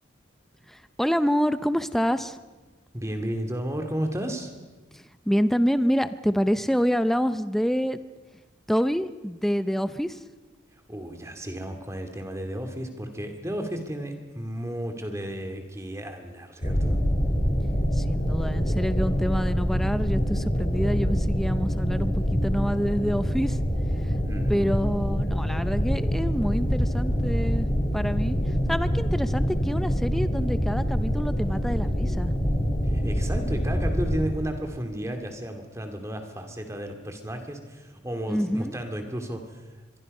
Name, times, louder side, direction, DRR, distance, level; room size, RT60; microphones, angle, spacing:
voice 1, 0.7-2.4 4.9-8.0 8.7-10.2 17.9-23.6 24.5-27.7 27.9-28.4 28.7-32.3 38.3-38.7, equal, ahead, 12 dB, 0.6 m, -27 dB
voice 2, 2.9-4.5 10.9-17.0 24.2-24.8 32.9-39.6, right 1 dB, 15° right, 5 dB, 2.4 m, -33 dB
sound 1, 16.6-34.2, equal, 35° left, 3.8 m, -25 dB
25.0 x 23.0 x 5.5 m, 1.3 s
head